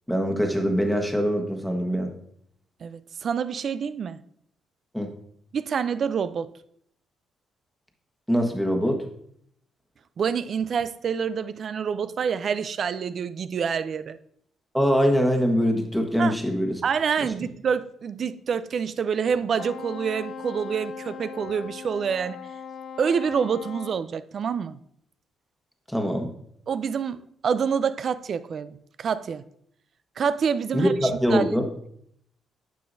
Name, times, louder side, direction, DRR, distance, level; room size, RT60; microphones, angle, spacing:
voice 1, 0.1-2.1 4.9-5.1 8.3-9.0 14.7-16.7 25.9-26.3 30.7-31.7, equal, ahead, 1.3 m, -23 dB
voice 2, 2.8-4.2 5.5-6.5 10.2-14.2 16.2-16.3 16.8-22.4 23.0-24.8 26.7-29.4 30.2-31.4, right 6 dB, 55° right, 0.4 m, -27 dB
Wind instrument woodwind instrument, 19.5-24.0, left 7 dB, 60° left, 0.6 m, -39 dB
9.3 x 6.9 x 2.6 m
cardioid pair, 90°, 0 cm